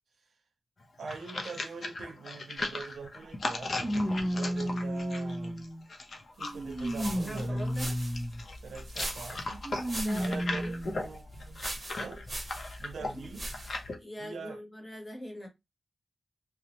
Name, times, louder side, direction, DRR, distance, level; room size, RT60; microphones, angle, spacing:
sound 1, 0.8-14.0, left 2 dB, 55° left, 0.6 m, -38 dB
voice 1, 1.0-5.7 6.4-7.7 8.6-9.7 10.2-12.2 12.8-13.5 14.2-14.6, right 4 dB, 90° right, 0.6 m, -43 dB
sound 2, 2.6-2.7 3.8-5.9 6.4-8.5 9.6-11.1 11.8-11.9 13.0-13.1, equal, 10° right, 0.4 m, -33 dB
sound 3, 6.5-13.9, right 1 dB, 25° right, 0.9 m, -42 dB
voice 2, 7.3-7.9 10.0-11.0 13.0-13.3 14.0-15.5, equal, 15° left, 1.0 m, -43 dB
2.7 x 2.0 x 2.8 m
wide cardioid pair, 125°, 0 cm